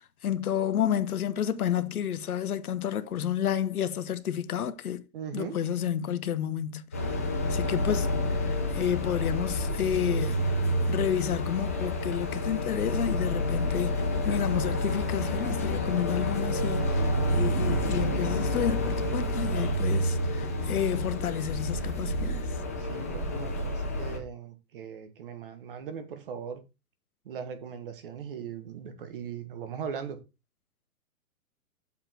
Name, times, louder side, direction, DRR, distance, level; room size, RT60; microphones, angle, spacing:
voice 1, 0.0-5.0 5.3-10.4 10.9-17.0 17.3-22.5, left 9 dB, 80° left, 1.2 m, -30 dB
voice 2, 5.1-5.6 22.8-26.6 27.2-30.2, right 7 dB, 40° right, 1.5 m, -39 dB
sound 1, 6.9-24.2, left 1 dB, 10° left, 0.5 m, -29 dB
7.5 x 7.0 x 4.4 m
hypercardioid pair, 165°, 44 cm